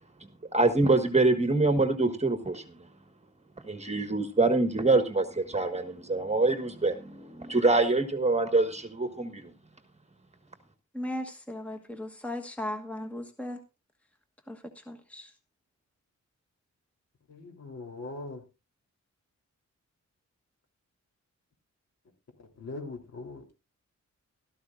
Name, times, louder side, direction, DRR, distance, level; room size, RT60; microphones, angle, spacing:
voice 1, 0.5-2.6 3.6-9.4, right 2 dB, 25° right, 8 dB, 1.6 m, -25 dB
voice 2, 10.9-13.6 14.5-15.3, left 1 dB, 5° left, 5 dB, 1.3 m, -37 dB
voice 3, 17.3-18.4 22.4-23.5, left 3 dB, 60° left, 3 dB, 3.7 m, -41 dB
16.5 x 13.5 x 2.6 m, 0.28 s
wide cardioid pair, 160°, 29 cm